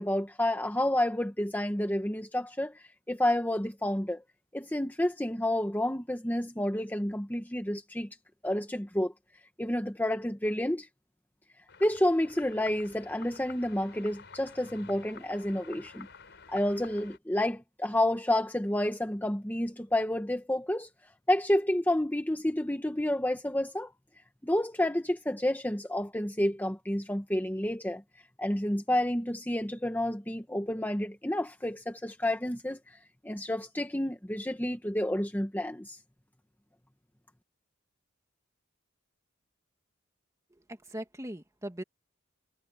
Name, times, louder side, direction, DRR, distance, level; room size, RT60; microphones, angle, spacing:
voice 1, 0.0-4.2 4.5-8.1 8.4-9.1 9.6-10.9 11.8-16.1 16.5-20.9 21.3-23.9 24.4-28.0 28.4-33.0 33.2-36.0, left 1 dB, 10° left, 1.2 m, -30 dB
sound 1, 11.7-17.2, left 5 dB, 55° left, 5.1 m, -51 dB
voice 2, 40.5-41.8, right 1 dB, 15° right, 2.1 m, -40 dB
head